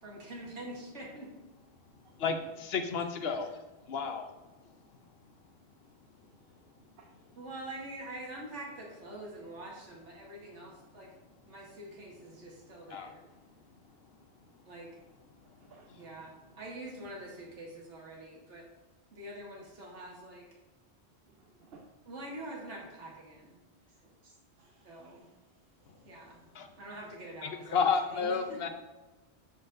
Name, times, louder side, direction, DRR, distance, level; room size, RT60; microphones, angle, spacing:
voice 1, 0.0-1.3 7.4-11.1 11.5-13.2 14.6-14.9 16.0-18.6 19.1-20.5 22.1-23.6 24.8-25.3 26.1-26.5 26.8-28.7, right 1 dB, 85° right, -2 dB, 1.8 m, -45 dB
voice 2, 2.2-3.5 3.9-4.3 12.9-13.2 26.5-26.7 27.4-28.7, left 5 dB, 65° left, 6 dB, 0.9 m, -31 dB
voice 3, 15.6-16.1 21.3-21.9 24.2-24.3 24.6-25.3 25.9-26.3, right 4 dB, 60° right, 1 dB, 0.9 m, -59 dB
12.5 x 4.2 x 2.6 m, 1.1 s
omnidirectional pair, 1.2 m